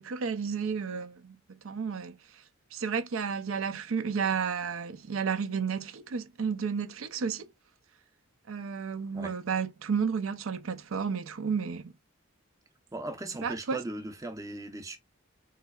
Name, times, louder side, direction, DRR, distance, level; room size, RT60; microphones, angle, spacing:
voice 1, 0.0-2.2 2.7-7.5 8.5-11.9 13.4-13.8, right 6 dB, 75° right, 0.5 m, -32 dB
voice 2, 12.9-15.0, right 2 dB, 15° right, 0.6 m, -38 dB
3.7 x 3.1 x 2.3 m
head